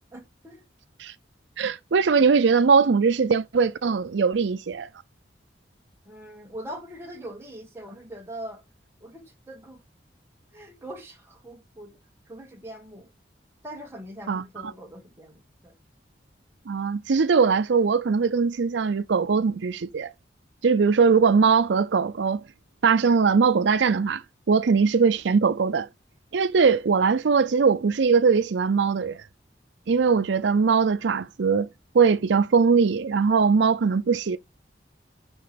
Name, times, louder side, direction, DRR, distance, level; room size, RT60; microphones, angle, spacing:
voice 1, 0.1-0.6 6.1-8.6 9.0-9.8 10.5-12.0 12.3-13.1 13.6-15.8, right 1 dB, 15° right, 1.8 m, -42 dB
voice 2, 1.6-4.9 14.3-14.7 16.7-20.1 20.6-22.4 22.8-24.2 24.5-25.9 26.3-29.2 29.9-31.7 31.9-34.4, right 5 dB, 75° right, 0.5 m, -21 dB
6.1 x 5.6 x 5.1 m
head